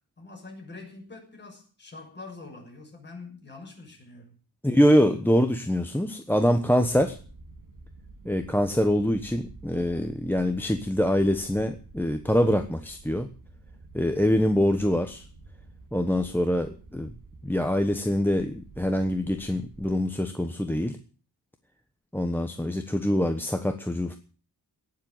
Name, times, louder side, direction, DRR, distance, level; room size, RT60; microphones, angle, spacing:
voice 1, 0.0-4.4, left 3 dB, 25° left, 6.8 m, -45 dB
voice 2, 4.6-7.2 8.2-13.3 13.9-15.2 15.9-17.1 17.4-21.0 22.1-24.2, equal, 5° left, 1.1 m, -24 dB
sound 1, 6.8-19.9, right 2 dB, 55° right, 3.3 m, -49 dB
18.5 x 7.5 x 9.0 m
wide cardioid pair, 145°, 39 cm